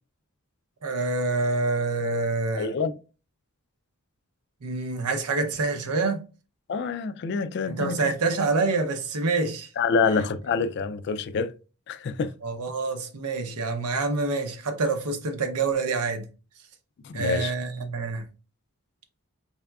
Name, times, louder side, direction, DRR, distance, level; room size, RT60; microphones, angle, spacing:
voice 1, 0.8-2.7 4.6-6.2 7.7-9.7 10.1-10.2 12.4-16.2 17.1-18.2, right 3 dB, 85° right, 0.7 m, -27 dB
voice 2, 2.6-2.9 6.7-8.0 9.8-11.5 11.9-12.3 17.0-17.5, left 5 dB, 50° left, 0.3 m, -26 dB
4.3 x 3.4 x 2.3 m
head